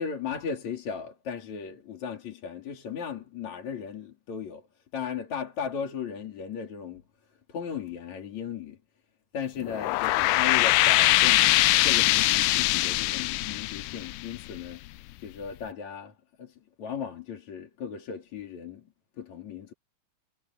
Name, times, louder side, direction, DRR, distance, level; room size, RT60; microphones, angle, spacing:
voice 1, 0.0-4.7 4.9-7.0 7.5-8.8 9.3-14.8 15.2-18.9 19.2-19.7, left 7 dB, 60° left, 4.2 m, -36 dB
sound 1, 9.6-14.9, left 19 dB, 80° left, 2.0 m, -23 dB
omnidirectional pair, 3.7 m